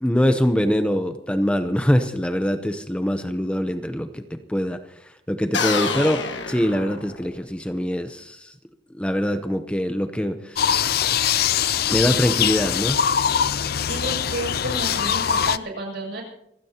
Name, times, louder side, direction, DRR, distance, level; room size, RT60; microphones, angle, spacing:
voice 1, 0.0-8.5 9.0-10.7 11.9-13.0, equal, 5° left, 8 dB, 0.7 m, -23 dB
sound 1, 5.5-7.5, left 5 dB, 70° left, 1.6 m, -27 dB
sound 2, 10.6-15.6, left 8 dB, 55° left, 0.5 m, -22 dB
voice 2, 13.9-16.2, right 1 dB, 65° right, 1 dB, 7.1 m, -31 dB
28.0 x 16.0 x 2.9 m, 0.80 s
head